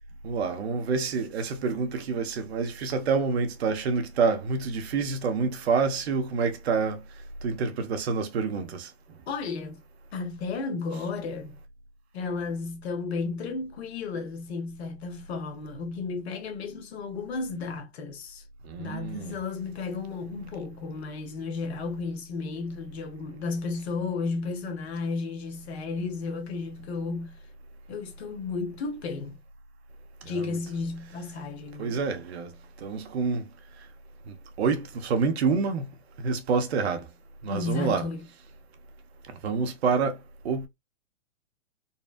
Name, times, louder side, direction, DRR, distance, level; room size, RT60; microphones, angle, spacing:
voice 1, 0.2-7.0 7.4-8.9 18.7-19.4 30.4-30.6 31.8-32.5 32.8-33.4 34.3-35.9 36.2-37.0 37.4-38.0 39.4-40.2 40.4-40.7, right 5 dB, 55° right, 1.0 m, -27 dB
voice 2, 9.3-9.8 10.1-11.6 12.1-18.4 18.8-27.4 27.9-29.4 30.2-32.0 37.5-38.3, left 4 dB, 55° left, 1.2 m, -33 dB
4.2 x 2.2 x 2.4 m
hypercardioid pair, 120°, 37 cm